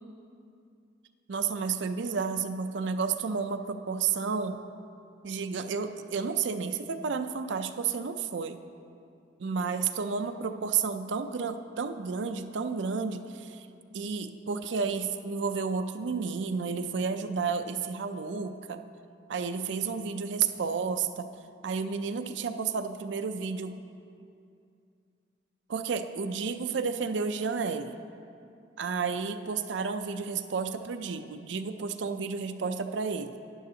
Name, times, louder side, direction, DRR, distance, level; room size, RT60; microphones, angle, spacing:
voice 1, 1.3-4.6 5.2-8.6 9.4-13.6 13.9-18.8 19.3-21.3 21.6-23.8 25.7-28.0 28.8-33.4, right 5 dB, 70° right, 8 dB, 0.5 m, -31 dB
12.0 x 10.0 x 2.8 m, 2.5 s
head